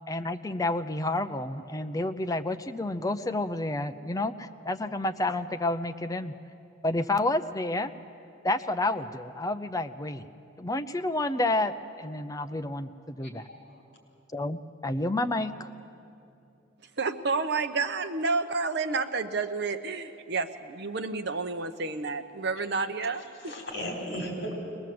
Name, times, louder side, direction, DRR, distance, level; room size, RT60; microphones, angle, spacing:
voice 1, 0.1-6.3 6.8-7.9 8.4-10.3 10.6-13.4 14.3-15.7, left 2 dB, 20° left, 9 dB, 0.6 m, -30 dB
voice 2, 13.5-13.8 22.6-22.7 23.1-24.7, equal, 55° left, 0 dB, 4.1 m, -36 dB
voice 3, 17.0-23.5, right 4 dB, 60° right, 8 dB, 0.9 m, -30 dB
22.0 x 20.0 x 7.7 m, 2.8 s
head